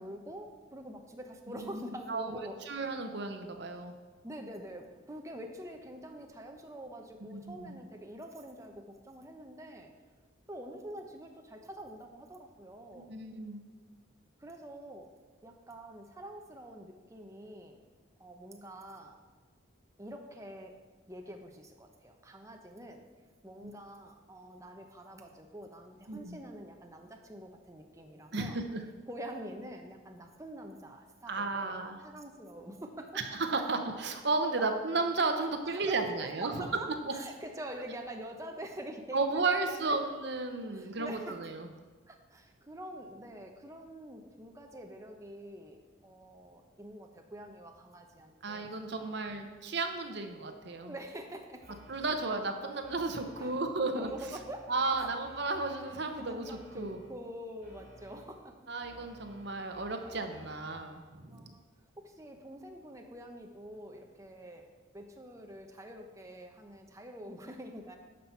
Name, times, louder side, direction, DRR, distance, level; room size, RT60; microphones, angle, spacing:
voice 1, 0.0-2.6 4.2-9.9 10.5-13.2 14.4-15.1 15.4-17.8 18.2-19.2 20.0-20.7 21.1-23.1 23.4-28.6 29.1-33.2 33.6-33.7 34.6-34.7 35.7-36.0 36.4-40.0 40.7-41.5 42.1-49.3 50.8-51.8 53.4-53.6 53.9-54.7 55.0-55.1 56.2-58.6 59.9-60.1 61.3-61.6 62.0-64.7 64.9-68.0, right 1 dB, 15° right, 3 dB, 0.7 m, -46 dB
voice 2, 2.1-3.9 7.3-7.8 13.1-13.6 23.6-23.7 26.1-26.4 28.3-28.8 31.3-32.0 33.1-36.7 37.0-37.1 39.1-41.7 48.4-50.9 51.9-54.1 54.7-57.0 58.7-61.5, right 3 dB, 55° right, 5 dB, 0.8 m, -34 dB
sound 1, 51.6-52.4 52.8-53.6 54.0-57.2 57.6-58.4 58.8-61.0, right 1 dB, 35° right, 3.3 m, -56 dB
11.5 x 5.8 x 4.5 m, 1.4 s
head